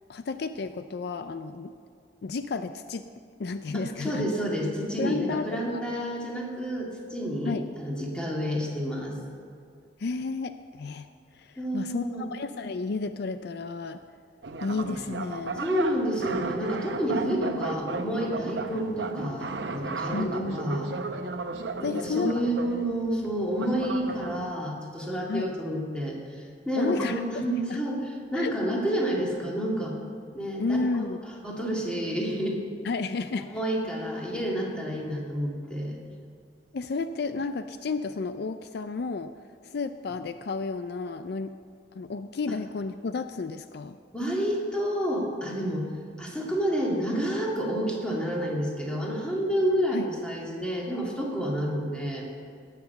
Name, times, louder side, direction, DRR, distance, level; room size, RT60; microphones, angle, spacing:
voice 1, 0.1-1.7 2.2-3.1 3.4-4.2 5.0-5.8 7.4-7.6 10.0-11.1 11.3-14.0 14.6-15.6 20.1-20.6 21.8-22.3 25.3-25.5 26.8-27.8 28.4-28.8 30.6-31.2 32.8-33.5 36.7-39.3 39.6-41.5 41.9-44.0 49.9-50.1, left 4 dB, 65° left, 10 dB, 0.4 m, -32 dB
voice 2, 3.7-9.2 11.6-12.3 15.6-20.9 21.8-30.0 30.3-31.1 31.4-32.6 33.4-36.0 44.1-45.9 46.2-52.2, equal, 5° left, -3 dB, 2.2 m, -29 dB
sound 1, 14.4-24.5, right 3 dB, 80° right, 0.8 m, -35 dB
17.5 x 6.7 x 6.8 m, 2.2 s
head